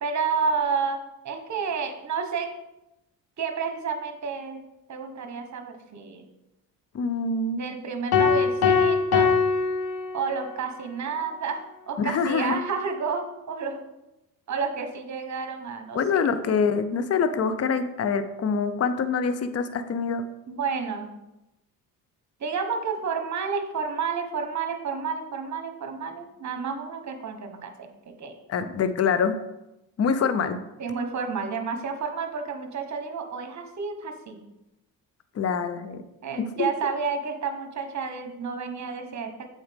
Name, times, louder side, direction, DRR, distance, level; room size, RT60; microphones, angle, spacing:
voice 1, 0.0-2.5 3.4-4.6 4.9-6.3 7.5-9.3 10.1-13.8 14.5-16.2 20.5-21.1 22.4-28.3 30.8-34.4 36.2-39.5, right 5 dB, 40° right, 6 dB, 1.2 m, -30 dB
voice 2, 6.9-7.6 12.0-12.6 15.9-20.2 28.5-29.4 30.0-30.6 35.3-36.0 36.4-36.7, left 5 dB, 35° left, 11 dB, 0.7 m, -25 dB
sound 1, 8.1-10.6, left 5 dB, 60° left, 1.1 m, -22 dB
7.8 x 4.3 x 3.6 m, 0.93 s
supercardioid pair, 65°, 42 cm